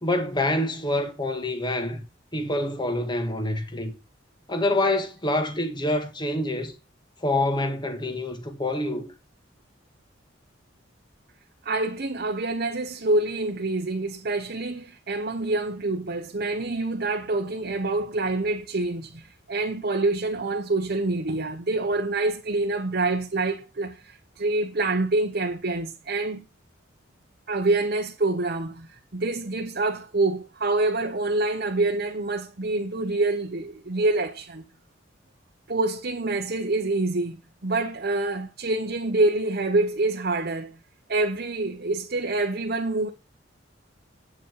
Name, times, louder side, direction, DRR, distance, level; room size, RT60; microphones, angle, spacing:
voice 1, 0.0-2.0 2.3-3.9 4.5-6.7 7.2-9.1, left 1 dB, 25° left, 1.7 m, -26 dB
voice 2, 11.6-26.4 27.5-34.6 35.7-37.4 37.6-40.8 41.1-43.1, right 2 dB, 55° right, 1.0 m, -26 dB
8.8 x 7.3 x 4.7 m
head